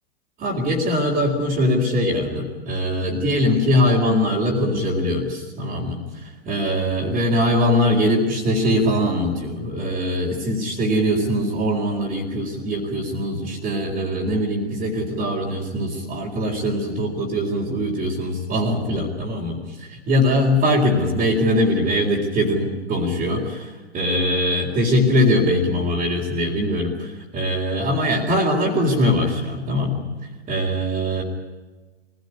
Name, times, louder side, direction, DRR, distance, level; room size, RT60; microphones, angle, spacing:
voice 1, 0.4-30.0 30.5-31.2, left 1 dB, 25° right, -3 dB, 4.1 m, -22 dB
23.5 x 17.5 x 9.9 m, 1.3 s
figure-of-eight pair, 110°, 33 cm